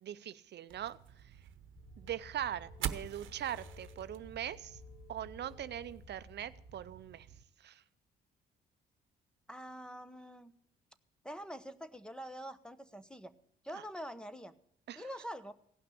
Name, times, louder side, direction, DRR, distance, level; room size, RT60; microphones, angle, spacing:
voice 1, 0.0-1.4 2.0-4.8 5.1-7.3 7.6-7.8 13.7-13.8 14.9-15.1, right 10 dB, 60° right, 14 dB, 0.6 m, -41 dB
sound 1, 0.7-7.4, right 10 dB, 80° right, 0.9 m, -46 dB
sound 2, 1.8-6.7, left 3 dB, 50° left, 2.0 m, -55 dB
voice 2, 9.5-10.5 11.2-13.3 13.6-14.5 15.0-15.5, equal, 5° left, 13 dB, 0.9 m, -45 dB
16.5 x 5.9 x 8.3 m, 0.72 s
cardioid pair, 90°, 20 cm